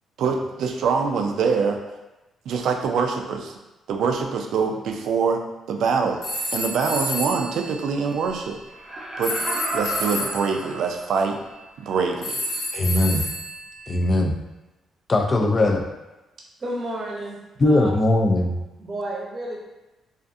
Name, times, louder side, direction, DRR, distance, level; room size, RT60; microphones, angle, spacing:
voice 1, 0.2-1.8 2.5-3.6 3.9-5.4 5.7-6.2 6.5-8.6 9.2-9.3 9.7-11.4 11.9-12.4, right 5 dB, 75° right, 4 dB, 0.3 m, -24 dB
sound 1, 6.2-8.5 9.2-10.6 12.2-13.9, left 1 dB, 85° left, 0.7 m, -30 dB
Laughter, 8.7-11.4 11.8-11.9, right 1 dB, ahead, 0.8 m, -32 dB
voice 2, 12.7-13.3 13.9-14.3 15.1-15.8 17.6-18.6, left 1 dB, 30° left, 3 dB, 0.4 m, -20 dB
voice 3, 16.6-17.9 18.8-19.6, right 1 dB, 40° right, -2 dB, 0.7 m, -31 dB
2.4 x 2.3 x 2.5 m, 1.0 s
cardioid pair, 90°, 0 cm